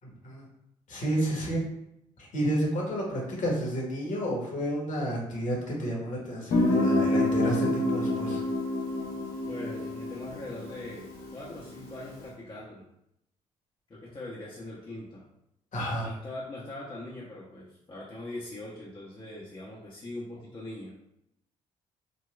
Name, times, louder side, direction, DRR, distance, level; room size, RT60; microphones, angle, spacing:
voice 1, 0.0-0.4 0.9-1.6 2.2-8.4 15.7-16.1, right 1 dB, 50° left, -3 dB, 1.4 m, -31 dB
Guitar, 6.5-12.1, left 1 dB, 70° left, 0.9 m, -28 dB
voice 2, 9.5-12.8 13.9-15.2 16.0-20.9, left 1 dB, 30° left, -6 dB, 0.8 m, -41 dB
4.0 x 2.2 x 2.4 m, 0.80 s
hypercardioid pair, 50°, 16 cm